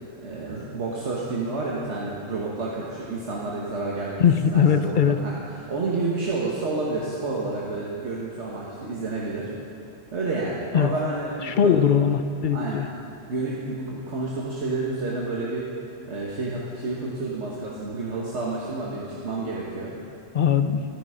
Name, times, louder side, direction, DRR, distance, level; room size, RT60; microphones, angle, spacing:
voice 1, 0.2-9.5 10.1-11.8 12.5-12.9 13.3-15.7 16.1-19.9, right 3 dB, 85° right, -5 dB, 1.7 m, -30 dB
voice 2, 4.2-5.2 10.7-10.9 11.4-12.9 20.3-20.8, left 7 dB, 55° left, 10 dB, 0.6 m, -20 dB
14.0 x 13.0 x 5.0 m, 2.6 s
omnidirectional pair, 1.2 m